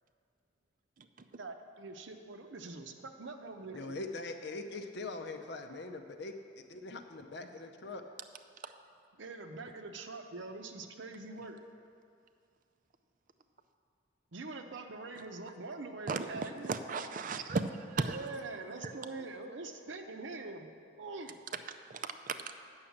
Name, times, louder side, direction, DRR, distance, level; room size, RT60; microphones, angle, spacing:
voice 1, 1.4-4.1 9.2-11.6 14.3-16.7 18.1-20.7 21.0-21.4, right 3 dB, 70° right, 5 dB, 0.8 m, -44 dB
voice 2, 3.7-6.3 6.7-8.0, left 3 dB, 60° left, 7 dB, 0.7 m, -42 dB
voice 3, 16.7-18.2 18.8-18.9 21.9-22.4, right 4 dB, 45° right, 8 dB, 0.5 m, -35 dB
8.8 x 6.4 x 7.1 m, 2.4 s
head